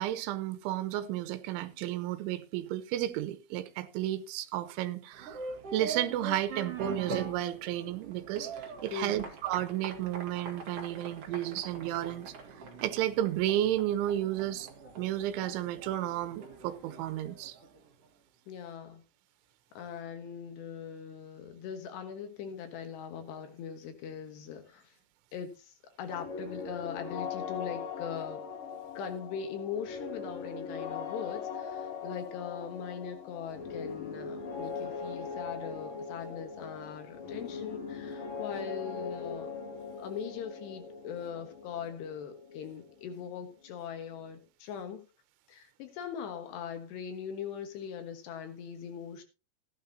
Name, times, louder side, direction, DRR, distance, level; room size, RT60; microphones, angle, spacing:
voice 1, 0.0-5.4 5.7-12.3 12.8-14.7 15.0-17.6, right 13 dB, 80° right, 3.4 m, -32 dB
sound 1, 5.1-17.9, right 4 dB, 50° right, 1.9 m, -43 dB
voice 2, 8.9-9.3 18.5-19.0 19.7-24.9 25.3-28.4 28.9-39.5 40.0-45.1 45.5-49.2, left 7 dB, 70° left, 3.3 m, -41 dB
sound 2, 26.1-43.7, left 5 dB, 50° left, 4.8 m, -40 dB
15.5 x 11.5 x 2.8 m
omnidirectional pair, 5.4 m